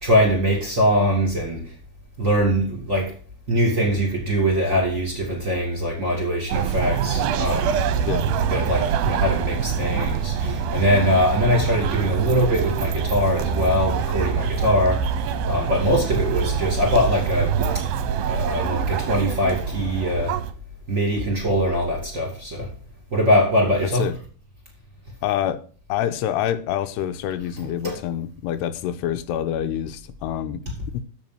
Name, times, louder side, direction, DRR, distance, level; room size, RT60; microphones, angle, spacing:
voice 1, 0.0-1.7 2.2-3.1 3.5-7.8 8.3-15.1 15.5-17.8 18.2-20.4 20.9-22.7 23.1-24.1 27.8-28.0, equal, 25° right, 2.3 m, -22 dB
sound 1, 6.5-20.5, right 7 dB, 75° right, 2.4 m, -25 dB
voice 2, 25.2-25.6 25.9-30.6 30.9-31.0, left 10 dB, 85° left, 2.8 m, -26 dB
7.3 x 7.0 x 7.6 m
omnidirectional pair, 4.8 m